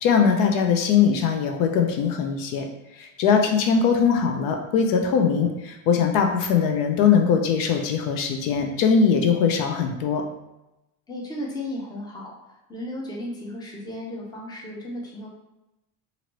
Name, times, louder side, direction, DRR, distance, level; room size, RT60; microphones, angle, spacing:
voice 1, 0.0-2.6 3.0-10.2, left 6 dB, 75° left, 4 dB, 0.5 m, -21 dB
voice 2, 3.2-3.6 11.1-12.3 12.7-15.3, left 1 dB, 10° left, -3 dB, 0.6 m, -35 dB
2.8 x 2.6 x 2.9 m, 0.94 s
cardioid pair, 135°, 33 cm